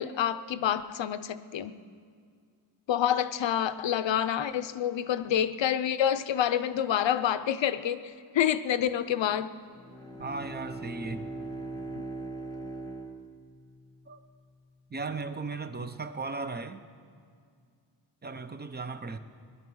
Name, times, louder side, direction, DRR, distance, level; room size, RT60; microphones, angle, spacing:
voice 1, 0.0-1.8 2.9-9.5, left 10 dB, 90° left, 0.7 m, -28 dB
Bowed string instrument, 9.7-14.1, right 3 dB, 10° left, 1.2 m, -40 dB
voice 2, 10.2-11.3 14.1-14.2 14.9-16.8 18.2-19.2, right 3 dB, 25° right, 0.8 m, -36 dB
21.0 x 11.0 x 6.3 m
wide cardioid pair, 125°, 43 cm